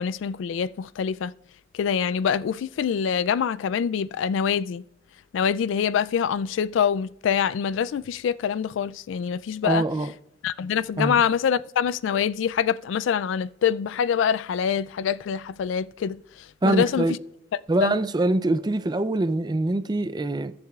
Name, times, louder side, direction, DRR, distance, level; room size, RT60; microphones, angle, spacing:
voice 1, 0.0-1.3 1.7-4.8 5.3-9.8 10.4-16.2 16.6-17.1 17.5-17.9, left 7 dB, 70° left, 0.3 m, -25 dB
voice 2, 9.6-10.1 11.0-11.2 16.6-17.2 17.7-20.5, right 2 dB, 20° right, 0.4 m, -24 dB
20.5 x 7.8 x 2.4 m
head